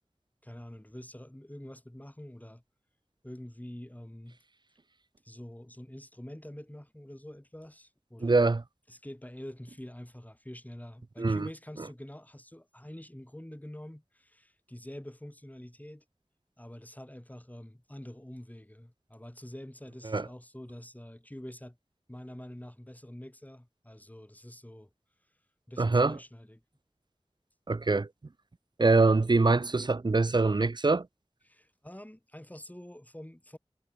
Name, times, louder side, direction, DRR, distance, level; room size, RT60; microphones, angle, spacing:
voice 1, 0.4-2.6 3.2-4.4 5.2-8.5 8.9-16.0 16.6-21.8 22.1-24.9 25.7-26.6 31.5-33.6, left 1 dB, 15° left, 5.6 m, -46 dB
voice 2, 8.2-8.6 11.2-11.5 20.0-20.2 25.8-26.2 27.7-28.1 28.8-31.1, right 3 dB, 40° right, 0.5 m, -24 dB
wide cardioid pair, 45°, 11 cm